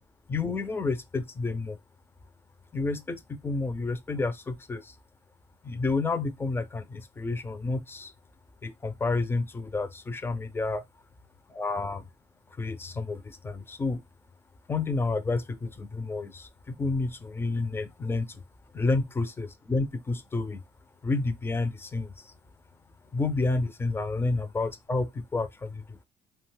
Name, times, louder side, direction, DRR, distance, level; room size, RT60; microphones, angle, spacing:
voice 1, 0.3-1.8 2.7-4.9 5.6-8.1 8.6-10.8 11.5-12.1 12.6-14.0 14.7-18.4 18.7-20.6 21.0-22.3 23.1-26.0, left 3 dB, 15° left, 0.3 m, -30 dB
2.6 x 2.2 x 3.1 m
cardioid pair, 110°, 17 cm